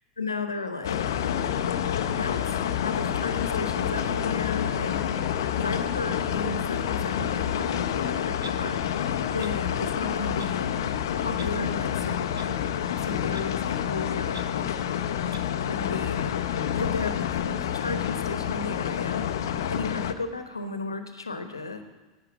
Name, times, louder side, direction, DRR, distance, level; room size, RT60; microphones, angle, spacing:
voice 1, 0.2-1.2 2.1-5.2 5.5-8.8 9.3-10.7 11.2-12.6 12.9-14.7 15.3-15.4 15.6-16.4 16.7-19.3 19.7-21.8, left 3 dB, 85° left, 8 dB, 1.0 m, -34 dB
sound 1, 0.8-20.1, left 9 dB, 65° left, 0.6 m, -28 dB
sound 2, 1.7-9.6, left 1 dB, 5° left, 3.1 m, -48 dB
Clock, 8.4-8.6 9.4-9.5 10.4-10.5 11.4-11.5 12.4-12.5 13.3-13.4 14.3-14.4 15.3-15.4, right 6 dB, 75° right, 0.6 m, -42 dB
11.5 x 8.8 x 6.3 m, 1.2 s
figure-of-eight pair, 85°, 2 cm